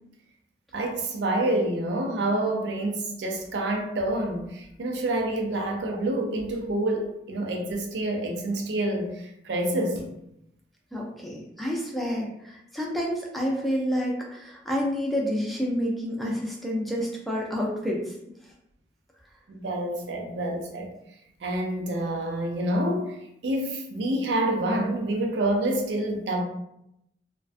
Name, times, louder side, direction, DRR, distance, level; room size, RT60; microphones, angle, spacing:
voice 1, 0.7-10.1 19.5-20.9 21.4-23.2 23.4-26.4, right 1 dB, 85° right, 1 dB, 0.5 m, -27 dB
voice 2, 10.9-18.0, equal, ahead, -2 dB, 0.3 m, -29 dB
2.4 x 2.1 x 2.4 m, 0.81 s
head